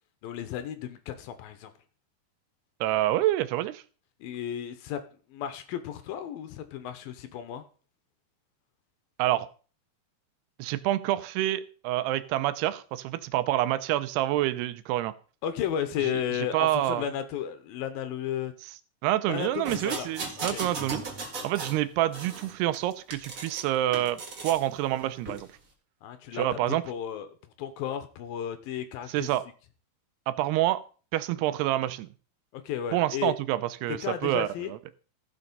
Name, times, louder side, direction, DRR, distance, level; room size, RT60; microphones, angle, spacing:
voice 1, 0.2-1.7 4.2-5.0 5.3-7.6 15.4-18.5 19.3-20.1 20.4-20.6 26.0-27.3 27.6-29.3 32.5-33.4 33.9-34.7, left 9 dB, 75° left, 10 dB, 2.5 m, -34 dB
voice 2, 2.8-3.8 9.2-9.5 10.6-15.1 16.5-17.1 19.0-21.0 21.4-25.5 26.3-26.8 29.1-29.4 30.3-30.8 31.1-32.1 32.9-34.5, right 14 dB, 85° right, 13 dB, 2.8 m, -27 dB
sound 1, 19.6-21.8 22.1-23.6 23.9-24.6 25.2-25.4, right 3 dB, 65° right, 0.8 m, -37 dB
15.5 x 6.3 x 5.4 m, 0.39 s
omnidirectional pair, 4.6 m